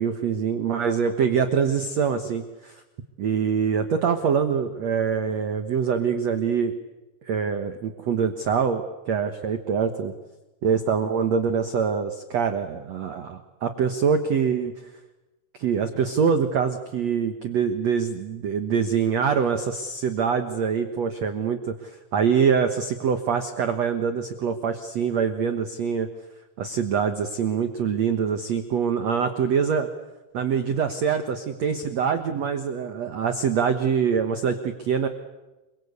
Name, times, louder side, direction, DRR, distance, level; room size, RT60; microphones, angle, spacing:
voice 1, 0.0-2.8 3.2-6.7 7.3-10.1 10.6-14.7 15.6-26.1 26.6-29.9 30.3-35.1, right 6 dB, 85° right, 8 dB, 1.5 m, -24 dB
28.5 x 23.0 x 8.3 m, 1.1 s
omnidirectional pair, 5.2 m